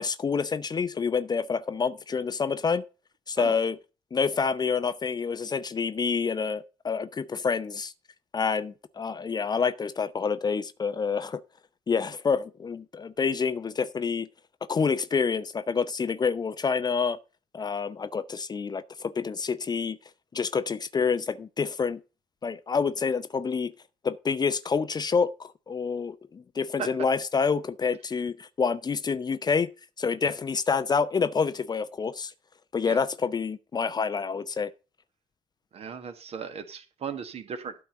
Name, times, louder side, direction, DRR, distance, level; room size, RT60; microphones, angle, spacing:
voice 1, 0.0-2.8 3.3-3.8 4.1-7.9 8.3-11.4 11.9-14.3 14.7-17.2 17.5-20.0 20.3-22.0 22.4-23.7 24.0-29.7 30.0-32.3 32.7-34.7, left 5 dB, 30° left, 0.8 m, -27 dB
voice 2, 35.7-37.7, right 6 dB, 45° right, 1.6 m, -36 dB
12.5 x 4.4 x 6.4 m
figure-of-eight pair, 45°, 15 cm